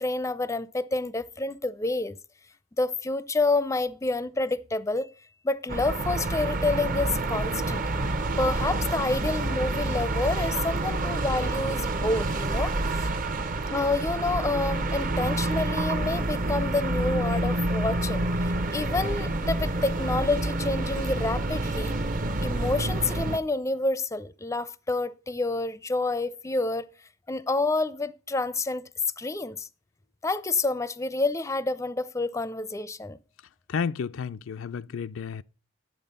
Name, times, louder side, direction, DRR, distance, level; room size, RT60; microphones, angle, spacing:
voice 1, 0.0-2.2 2.8-7.8 8.4-13.1 13.7-22.0 22.4-26.9 27.3-28.9 29.2-29.7 30.2-33.2, left 2 dB, 15° left, 0.5 m, -28 dB
sound 1, 5.7-23.4, right 2 dB, 45° right, 0.8 m, -28 dB
voice 2, 33.7-35.4, left 6 dB, 80° left, 0.4 m, -31 dB
11.0 x 7.8 x 5.3 m
head